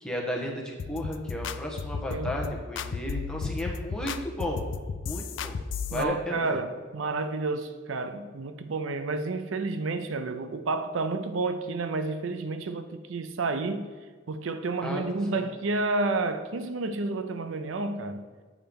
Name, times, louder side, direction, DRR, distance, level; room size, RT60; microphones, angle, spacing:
voice 1, 0.0-4.6 5.0-5.6 5.9-6.6 14.8-15.0 15.3-15.5, left 1 dB, 5° left, 1.2 m, -34 dB
sound 1, 0.8-6.0, left 5 dB, 70° left, 0.4 m, -34 dB
voice 2, 5.9-13.9 14.3-18.2, right 3 dB, 85° right, 0.6 m, -30 dB
8.6 x 4.4 x 5.2 m
head